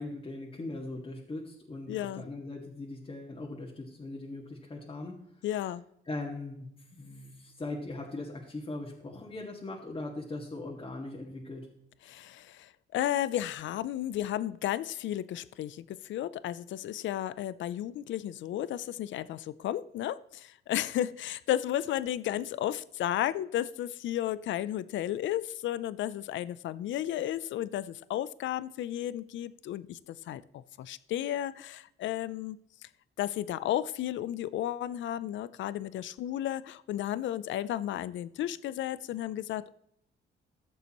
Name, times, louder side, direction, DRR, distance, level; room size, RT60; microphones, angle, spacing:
voice 1, 0.0-5.2 6.1-11.7, left 2 dB, 25° left, 1.9 m, -40 dB
voice 2, 1.9-2.2 5.4-5.8 12.1-32.6 33.2-39.7, left 12 dB, 70° left, 0.5 m, -33 dB
14.5 x 6.8 x 3.0 m
cardioid pair, 90°, 20 cm